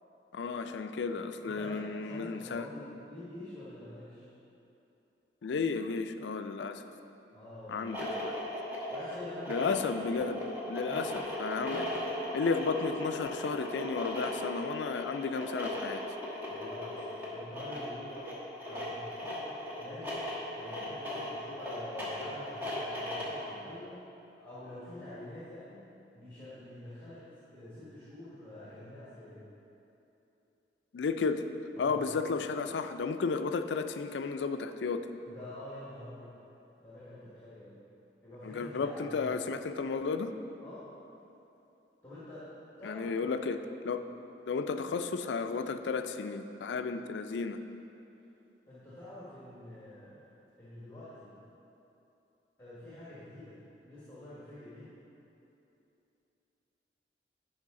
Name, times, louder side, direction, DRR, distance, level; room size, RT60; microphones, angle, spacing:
voice 1, 0.3-2.7 5.4-6.8 7.7-8.3 9.5-10.4 10.7-11.9 12.3-16.0 30.9-31.5 31.8-35.0 38.4-40.3 42.8-43.6 43.8-44.0 44.5-47.6, left 4 dB, 85° left, 9 dB, 0.4 m, -33 dB
voice 2, 1.4-4.3 7.3-8.1 8.9-9.8 10.9-11.2 11.6-12.0 16.5-18.3 18.6-24.0 24.4-25.8 26.1-29.5 31.8-32.3 35.2-36.3 36.8-37.8 38.2-39.3 40.6-40.9 42.0-42.5 42.8-43.3 48.7-50.3 50.6-51.3 52.6-54.9, left 1 dB, 10° left, -11 dB, 1.5 m, -47 dB
sound 1, 7.7-23.4, left 1 dB, 10° right, 1.2 m, -38 dB
11.5 x 4.9 x 3.7 m, 2.9 s
head